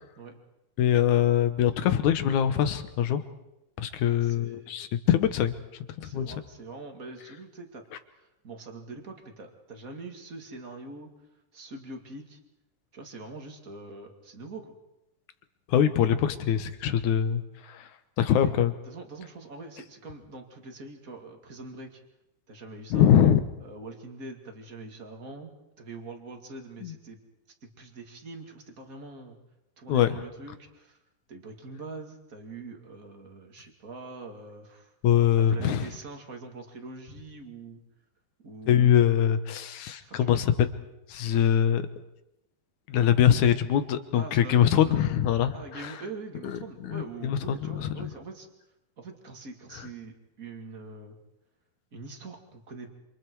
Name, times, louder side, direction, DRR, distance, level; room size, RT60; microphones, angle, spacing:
voice 1, 0.8-3.2 3.8-5.5 6.0-6.4 15.7-17.9 18.2-18.7 22.9-23.4 26.8-26.9 29.9-30.2 35.0-35.9 38.7-40.5 41.1-41.8 42.9-45.9 46.4-46.5 46.8-47.9, left 10 dB, 65° left, 11 dB, 2.0 m, -23 dB
voice 2, 4.0-4.7 6.0-7.8 8.1-11.1 11.5-12.4 12.9-14.8 18.3-18.6 18.8-22.0 22.5-23.2 23.6-25.5 25.8-27.2 27.6-29.4 29.8-31.0 31.3-34.9 35.4-37.8 38.4-38.9 40.0-40.4 44.1-45.0 45.5-48.5 49.0-51.2 51.9-52.9, right 3 dB, 25° right, 3 dB, 2.0 m, -43 dB
28.5 x 27.0 x 4.7 m, 0.88 s
omnidirectional pair, 4.6 m